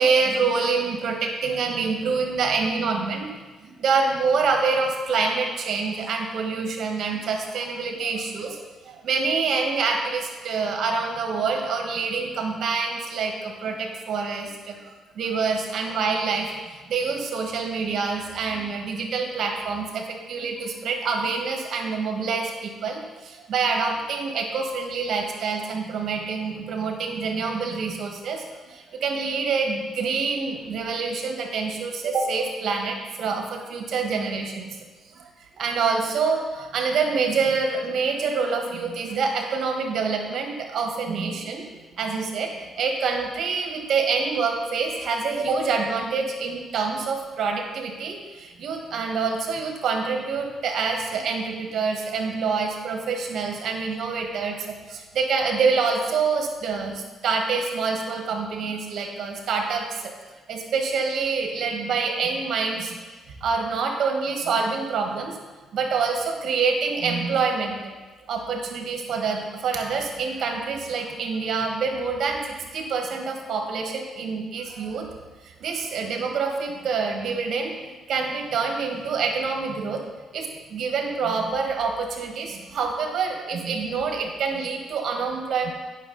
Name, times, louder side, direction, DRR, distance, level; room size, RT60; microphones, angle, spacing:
voice 1, 0.0-3.3 3.6-34.8 35.1-35.3 35.6-41.6 42.0-60.1 60.5-63.0 63.4-65.4 65.7-68.0 68.2-72.4 72.7-75.1 75.4-80.0 80.3-85.7, right 4 dB, 65° right, 2 dB, 1.4 m, -26 dB
9.4 x 5.8 x 3.9 m, 1.3 s
cardioid pair, 90°, 0 cm